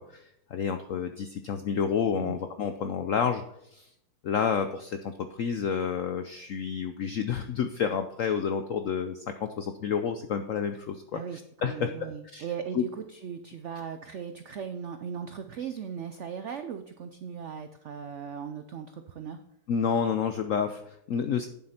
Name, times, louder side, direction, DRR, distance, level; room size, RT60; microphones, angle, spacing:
voice 1, 0.0-3.4 3.7-3.9 4.2-11.2 11.6-11.9 12.3-12.5 12.7-12.8 19.7-21.5, left 7 dB, 70° left, 8 dB, 0.7 m, -29 dB
voice 2, 11.1-19.4, right 7 dB, 85° right, 9 dB, 0.6 m, -38 dB
9.6 x 7.5 x 4.3 m, 0.77 s
omnidirectional pair, 2.0 m